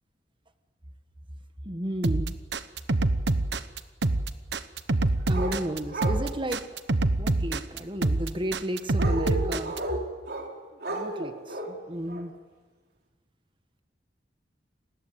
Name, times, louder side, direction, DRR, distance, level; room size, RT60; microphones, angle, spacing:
voice 1, 1.6-2.4 5.3-6.7 7.2-9.7 10.7-12.3, right 1 dB, 30° right, 8 dB, 1.5 m, -33 dB
sound 1, 2.0-9.8, right 2 dB, 80° right, 1.1 m, -26 dB
sound 2, 5.3-5.5 5.9-6.2 8.9-10.5 10.8-11.7 12.1-12.2, right 2 dB, 60° right, 3.7 m, -32 dB
28.5 x 19.5 x 8.2 m, 1.3 s
head